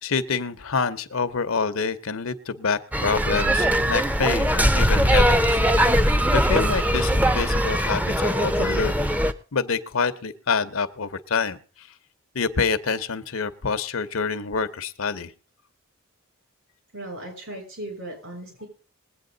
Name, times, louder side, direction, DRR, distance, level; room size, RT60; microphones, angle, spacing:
voice 1, 0.0-5.9 6.3-9.0 9.5-11.9 12.3-15.3, left 5 dB, 75° left, 13 dB, 0.8 m, -27 dB
sound 1, 2.9-9.3, equal, 5° right, 0.5 m, -21 dB
voice 2, 16.9-18.7, right 1 dB, 70° right, 0 dB, 6.9 m, -38 dB
21.0 x 8.5 x 3.9 m, 0.38 s
head